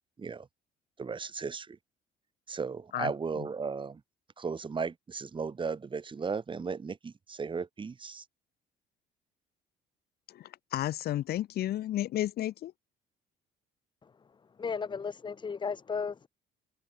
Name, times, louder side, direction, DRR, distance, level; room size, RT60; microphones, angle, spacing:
voice 1, 1.0-1.8 2.5-4.0 4.4-8.2, right 5 dB, 30° right, 7.6 m, -36 dB
voice 2, 10.3-12.7, left 13 dB, 65° left, 4.6 m, -32 dB
voice 3, 14.6-16.3, left 5 dB, 30° left, 1.2 m, -34 dB
open air
cardioid pair, 110°, 17 cm